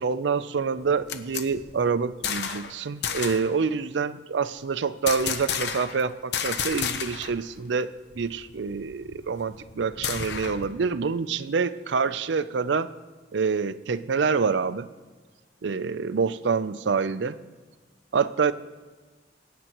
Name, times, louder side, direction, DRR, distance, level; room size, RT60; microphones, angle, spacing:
voice 1, 0.0-12.9 13.3-14.9 15.6-17.4 18.1-18.5, right 5 dB, 75° right, 15 dB, 0.5 m, -26 dB
sound 1, 0.8-2.7 3.0-3.5 5.1-6.0 6.3-7.4 7.7-7.8 8.1-10.7, left 7 dB, 65° left, 0.8 m, -32 dB
23.0 x 9.4 x 3.0 m, 1.4 s
head